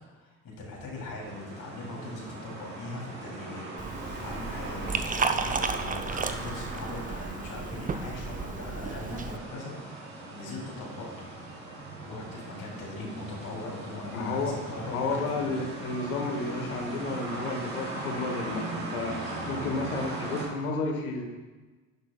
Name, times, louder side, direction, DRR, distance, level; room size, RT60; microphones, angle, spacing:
voice 1, 0.1-3.6 4.1-11.3 12.0-15.5, left 2 dB, 50° left, -3 dB, 3.2 m, -40 dB
sound 1, 1.2-20.5, right 2 dB, 80° right, 3.0 m, -39 dB
Liquid, 3.8-9.4, right 4 dB, 20° right, 0.6 m, -33 dB
voice 2, 14.1-14.6 14.9-21.2, left 3 dB, 85° left, 3 dB, 1.4 m, -32 dB
11.5 x 9.7 x 2.3 m, 1.3 s
hypercardioid pair, 60°, 43 cm